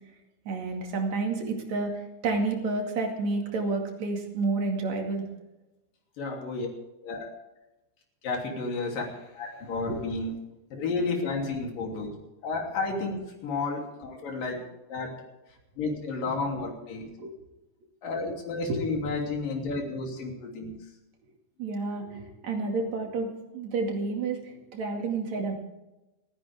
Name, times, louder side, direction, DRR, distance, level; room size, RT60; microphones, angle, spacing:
voice 1, 0.5-5.2 9.9-10.0 17.2-17.3 18.7-18.8 21.6-25.5, right 3 dB, 45° right, 2 dB, 3.0 m, -30 dB
voice 2, 6.2-6.7 7.0-7.3 8.2-10.3 10.7-12.1 12.4-15.2 15.8-17.1 18.0-20.8, left 3 dB, 55° left, 0 dB, 4.5 m, -32 dB
29.5 x 9.9 x 3.6 m, 0.98 s
omnidirectional pair, 5.0 m